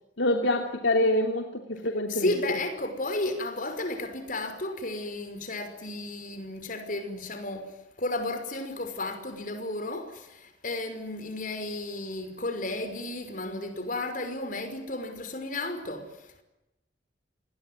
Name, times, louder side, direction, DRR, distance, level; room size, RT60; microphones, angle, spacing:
voice 1, 0.2-2.6, left 1 dB, 85° left, 3.0 m, -26 dB
voice 2, 2.1-16.4, left 2 dB, 45° left, 5.6 m, -33 dB
28.0 x 21.5 x 9.7 m
head